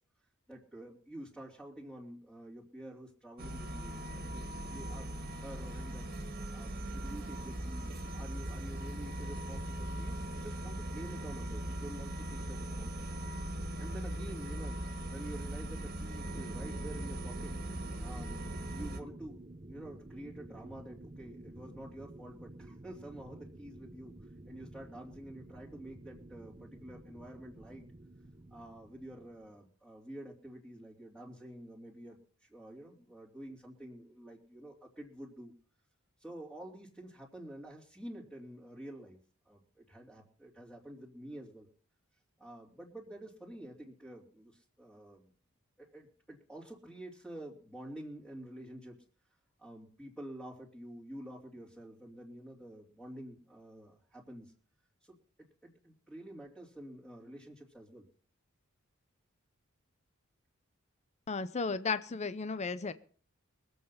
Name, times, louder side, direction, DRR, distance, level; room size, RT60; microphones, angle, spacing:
voice 1, 0.5-6.1 6.5-13.1 13.8-14.8 15.1-17.6 18.0-19.4 19.7-24.1 24.4-27.9 28.5-35.5 36.2-39.2 39.4-41.7 42.4-45.3 45.8-49.0 49.6-54.5 55.0-55.2 55.6-58.1, right 1 dB, ahead, -5 dB, 3.1 m, -49 dB
sound 1, 3.4-19.0, right 1 dB, 45° right, 2.1 m, -39 dB
sound 2, 16.3-29.6, right 1 dB, 25° right, 0.8 m, -51 dB
voice 2, 61.3-62.9, left 4 dB, 30° left, 13 dB, 0.7 m, -34 dB
23.0 x 8.0 x 5.7 m, 0.43 s
head